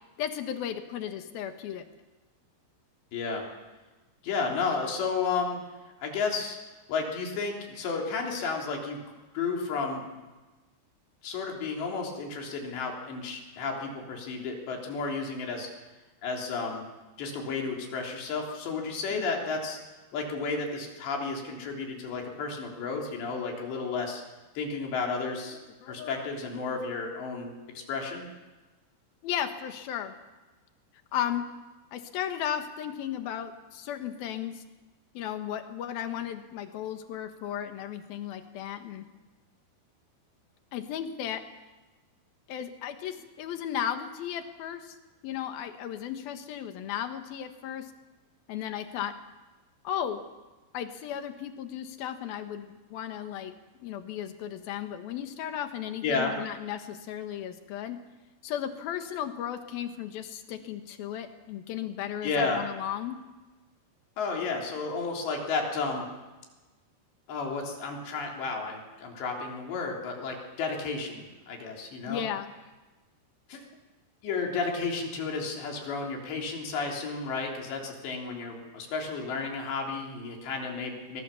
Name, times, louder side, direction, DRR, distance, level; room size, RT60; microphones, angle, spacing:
voice 1, 0.2-1.8 19.2-19.3 25.8-26.3 29.2-30.1 31.1-31.5 31.9-34.6 35.1-39.1 40.7-41.4 42.5-44.9 45.2-47.9 48.5-49.1 49.8-50.2 50.7-53.5 53.8-58.0 58.4-63.2 72.1-72.5, left 10 dB, 65° left, 7 dB, 3.0 m, -35 dB
voice 2, 3.1-3.5 4.2-5.6 6.0-6.6 6.9-9.0 9.3-10.2 11.2-15.7 16.2-16.8 17.2-19.8 20.1-24.2 24.6-25.6 25.9-28.3 56.0-56.4 62.2-62.6 64.2-66.1 67.3-72.2 73.5-73.6 74.2-81.2, left 4 dB, 80° left, 0 dB, 5.7 m, -32 dB
23.0 x 22.0 x 7.1 m, 1.2 s
omnidirectional pair, 4.9 m